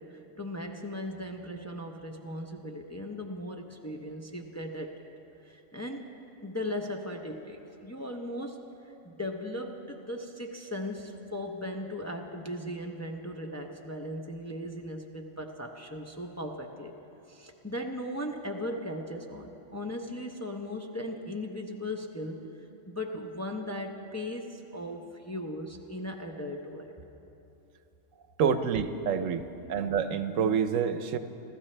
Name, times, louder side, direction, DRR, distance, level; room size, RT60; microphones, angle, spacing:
voice 1, 0.0-4.9 5.4-6.1 6.4-16.9 17.3-22.5 22.9-27.0, left 1 dB, 15° left, 1 dB, 0.6 m, -38 dB
voice 2, 28.4-29.4 29.7-31.2, right 7 dB, 80° right, 10 dB, 1.1 m, -27 dB
28.5 x 13.5 x 3.3 m, 3.0 s
omnidirectional pair, 1.3 m